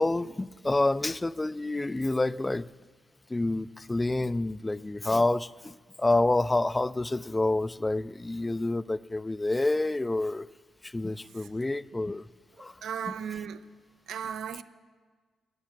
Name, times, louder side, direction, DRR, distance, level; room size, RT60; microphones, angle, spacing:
voice 1, 0.0-2.7 3.3-10.5 10.8-12.3 12.6-12.7, left 2 dB, 15° left, 0.4 m, -28 dB
voice 2, 12.8-13.6 14.1-14.6, right 8 dB, 85° right, 0.7 m, -35 dB
16.0 x 10.5 x 7.3 m
cardioid pair, 100°, 0 cm